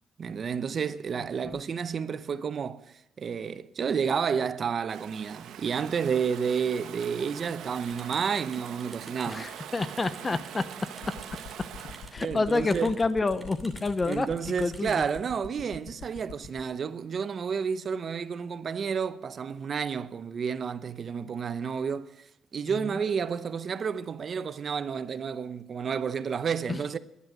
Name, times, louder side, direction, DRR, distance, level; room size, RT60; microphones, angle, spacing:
voice 1, 0.2-9.5 12.2-13.0 14.1-22.1 22.5-27.0, right 6 dB, 50° right, 0.8 m, -31 dB
Stream / Ocean, 4.9-12.2, right 9 dB, 80° right, 1.1 m, -43 dB
sound 1, 7.8-15.2, right 1 dB, 5° right, 2.8 m, -52 dB
voice 2, 9.3-10.6 12.1-14.3 14.6-15.0 22.8-22.9 26.7-26.8, left 3 dB, 25° left, 0.7 m, -28 dB
sound 2, 11.0-16.6, left 6 dB, 90° left, 1.4 m, -42 dB
11.0 x 11.0 x 7.8 m
cardioid pair, 90°, 0 cm